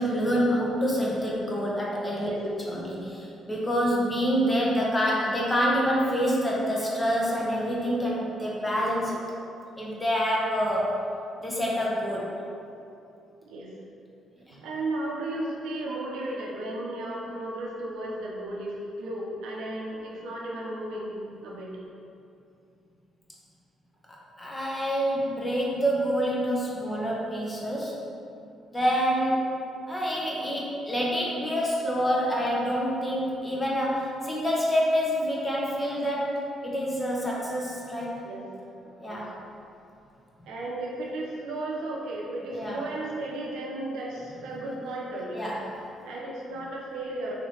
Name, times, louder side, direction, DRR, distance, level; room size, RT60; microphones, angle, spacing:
voice 1, 0.0-9.2 9.8-11.0 11.4-12.4 14.5-14.6 24.1-28.0 28.7-29.4 29.9-38.2 39.0-39.3 42.5-42.8 45.3-45.8, equal, 20° left, -4 dB, 0.8 m, -27 dB
voice 2, 13.4-13.7 14.6-21.2 21.4-21.7 38.2-38.5 38.8-39.2 40.4-45.4 45.8-47.3, right 1 dB, 90° right, -3 dB, 0.6 m, -34 dB
3.0 x 2.9 x 4.2 m, 2.7 s
cardioid pair, 90°, 0 cm